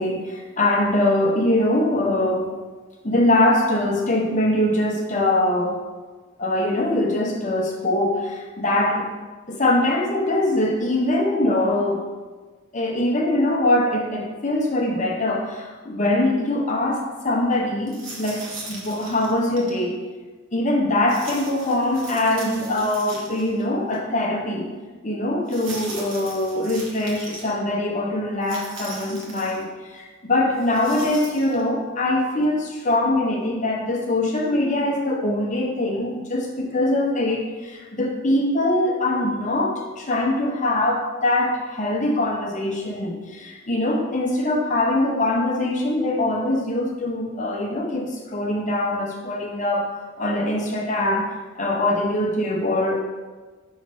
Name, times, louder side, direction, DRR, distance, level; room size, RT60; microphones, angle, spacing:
voice 1, 0.0-2.6 3.0-5.7 6.4-9.1 9.5-12.0 12.7-20.0 20.5-24.7 25.0-49.9 50.2-51.3 51.6-53.0, left 1 dB, 35° left, -1 dB, 0.8 m, -23 dB
sound 1, 17.9-19.8 21.1-23.6 23.9-24.0 25.5-27.5 28.4-29.6 30.6-31.6, right 3 dB, 60° right, 1.1 m, -39 dB
5.7 x 3.2 x 5.2 m, 1.4 s
head